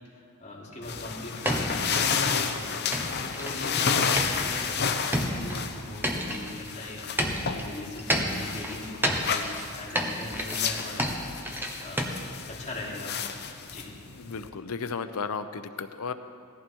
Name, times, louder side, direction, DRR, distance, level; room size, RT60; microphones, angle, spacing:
voice 1, 0.1-3.1 3.3-7.1 7.5-11.1 11.8-12.1 12.5-13.3 13.7-13.9, left 1 dB, 30° left, -5 dB, 3.4 m, -40 dB
sound 1, 0.8-14.5, left 6 dB, 50° left, 0.9 m, -31 dB
sound 2, 1.5-2.1 2.9-3.7 4.2-6.7 7.2-12.1, equal, 10° right, 1.2 m, -30 dB
voice 2, 14.2-16.1, left 5 dB, 80° left, 10 dB, 0.7 m, -34 dB
18.5 x 14.5 x 4.6 m, 2.3 s
head